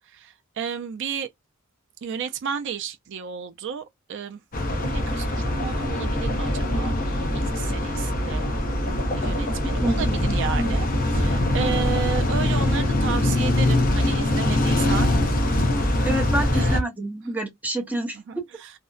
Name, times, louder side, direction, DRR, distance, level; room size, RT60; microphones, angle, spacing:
voice 1, 0.1-1.3 2.0-4.4 4.8-8.5 8.7-8.9 9.2-15.1 16.5-16.8 18.3-18.7, right 7 dB, 55° right, 0.4 m, -33 dB
sound 1, 4.5-16.8, left 1 dB, 40° left, 0.7 m, -23 dB
voice 2, 9.6-10.7 16.0-18.2, right 1 dB, 5° right, 0.7 m, -28 dB
2.6 x 2.1 x 2.3 m
head